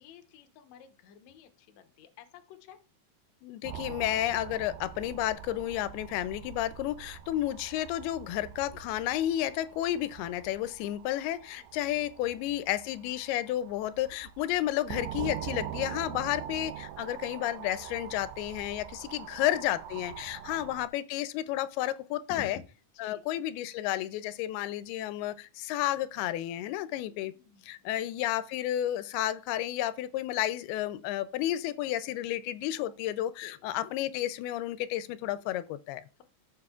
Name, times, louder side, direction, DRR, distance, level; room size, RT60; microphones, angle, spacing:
voice 1, 0.0-2.8 11.5-11.6 19.3-19.4 20.4-20.6 22.3-22.7 22.9-23.2 26.9-28.1 32.8-32.9 33.4-33.6, left 7 dB, 70° left, 1.8 m, -51 dB
voice 2, 3.4-22.6 23.0-27.3 27.6-36.0, left 13 dB, 85° left, 2.5 m, -32 dB
sound 1, 3.6-20.9, right 11 dB, 80° right, 2.4 m, -44 dB
14.5 x 7.1 x 2.4 m
omnidirectional pair, 4.4 m